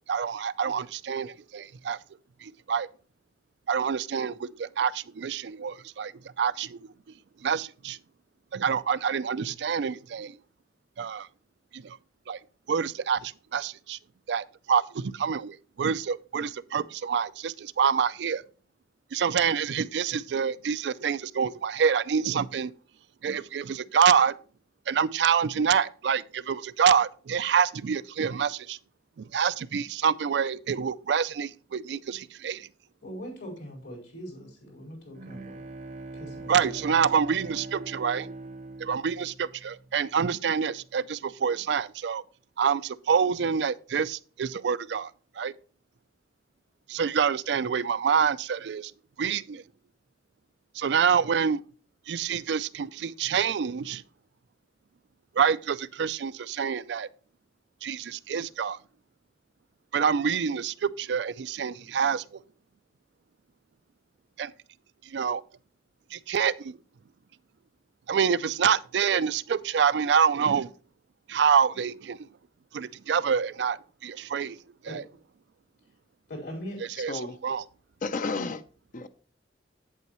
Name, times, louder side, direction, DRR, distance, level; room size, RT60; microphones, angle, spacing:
voice 1, 0.1-2.0 2.4-2.9 3.7-6.1 6.4-6.8 7.4-8.0 8.5-10.4 11.0-11.3 11.7-12.0 12.3-12.4 12.7-14.0 14.3-18.4 19.1-22.7 23.2-24.4 24.9-28.8 29.2-32.7 36.5-38.3 38.8-42.2 42.6-45.1 45.4-45.5 46.9-48.9 49.2-49.6 50.8-51.6 52.1-54.0 55.4-57.1 57.8-58.8 59.9-62.2 64.4-64.5 65.1-65.4 66.1-66.8 68.1-70.7 71.3-72.2 72.7-74.6 74.8-75.0 77.0-77.6, right 7 dB, 70° right, 0.4 m, -26 dB
voice 2, 33.0-35.6 36.1-36.9 74.8-75.0 76.3-76.8, equal, 75° left, 4.8 m, -41 dB
Bowed string instrument, 34.8-40.3, right 2 dB, 45° right, 0.7 m, -42 dB
voice 3, 77.0-77.4 78.0-78.6 78.9-79.1, left 3 dB, 50° left, 0.6 m, -32 dB
8.2 x 8.1 x 3.0 m
head